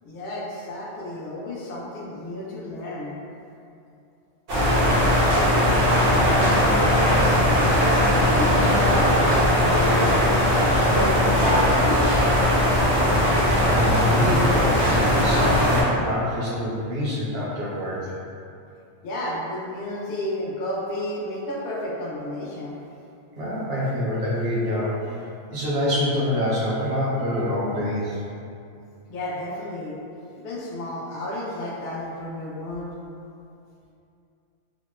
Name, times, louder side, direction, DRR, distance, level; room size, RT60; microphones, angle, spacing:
voice 1, 0.0-3.2 7.8-10.1 10.8-12.1 19.0-22.7 29.1-30.0 30.4-32.8, left 1 dB, 60° left, -5 dB, 0.7 m, -31 dB
sound 1, 4.5-15.8, left 1 dB, 85° right, 1.1 m, -19 dB
voice 2, 13.7-18.1 23.4-25.1 25.5-28.2, left 1 dB, 60° right, -7 dB, 0.8 m, -26 dB
2.8 x 2.0 x 2.2 m, 2.5 s
omnidirectional pair, 1.2 m